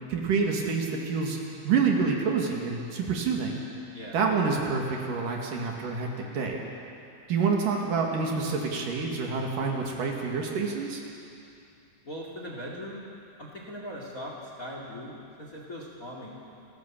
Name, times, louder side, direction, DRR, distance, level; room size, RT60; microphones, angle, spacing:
voice 1, 0.1-1.4 1.6-3.6 4.1-6.1 6.3-6.6 7.3-11.0, right 5 dB, 65° right, 0 dB, 3.5 m, -27 dB
voice 2, 12.0-13.0 13.4-16.3, equal, 25° left, -1 dB, 2.2 m, -40 dB
30.0 x 14.0 x 7.3 m, 2.6 s
omnidirectional pair, 4.4 m